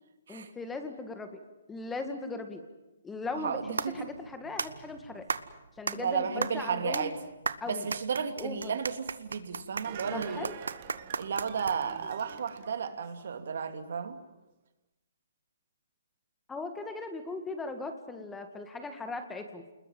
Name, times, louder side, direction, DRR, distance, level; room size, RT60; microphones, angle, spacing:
voice 1, 0.3-1.3 1.7-2.6 3.0-5.3 5.8-7.1 7.6-7.8 8.4-8.7 10.1-10.6 16.5-19.6, left 3 dB, 10° left, 7 dB, 1.9 m, -38 dB
voice 2, 3.3-4.1 5.9-7.2 7.7-10.5 11.2-14.2, right 6 dB, 65° right, 7 dB, 2.8 m, -33 dB
sound 1, 3.3-12.1, right 5 dB, 85° right, 1.2 m, -37 dB
sound 2, 9.8-13.6 14.0-14.1, right 10 dB, 40° right, 1.6 m, -46 dB
29.0 x 21.0 x 7.6 m, 0.98 s
hypercardioid pair, 150°, 0 cm